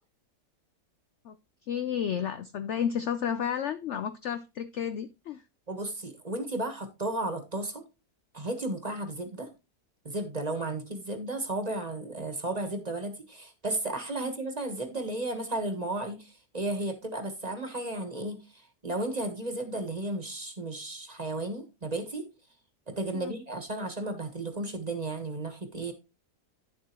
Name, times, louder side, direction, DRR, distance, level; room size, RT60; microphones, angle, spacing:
voice 1, 1.7-5.4 14.2-14.3 23.1-23.3, left 8 dB, 65° left, 0.7 m, -32 dB
voice 2, 5.7-7.8 8.3-9.5 10.0-22.3 22.9-25.9, right 2 dB, 25° right, 1.3 m, -34 dB
10.5 x 7.3 x 3.0 m
omnidirectional pair, 1.7 m